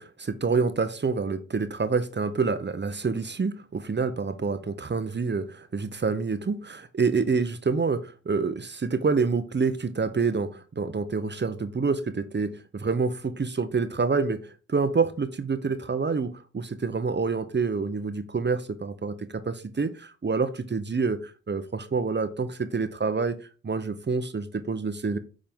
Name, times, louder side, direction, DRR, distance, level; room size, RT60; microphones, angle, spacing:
voice 1, 0.0-14.4 14.7-23.4 23.6-25.2, right 4 dB, 35° right, 11 dB, 0.8 m, -27 dB
8.9 x 3.8 x 3.6 m, 0.35 s
cardioid pair, 60°, 32 cm